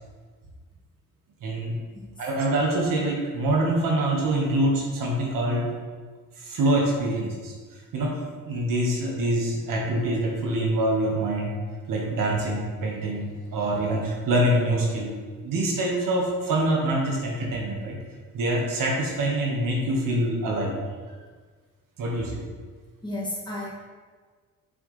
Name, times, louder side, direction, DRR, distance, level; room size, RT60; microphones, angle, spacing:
voice 1, 1.4-1.8 2.2-5.7 6.4-7.5 7.9-11.5 11.9-15.2 15.4-18.0 18.3-20.7 22.0-22.4, right 1 dB, 65° right, -1 dB, 1.7 m, -25 dB
voice 2, 23.0-23.7, left 1 dB, 15° left, -7 dB, 2.3 m, -32 dB
7.6 x 6.3 x 3.4 m, 1.5 s
cardioid pair, 115°, 35 cm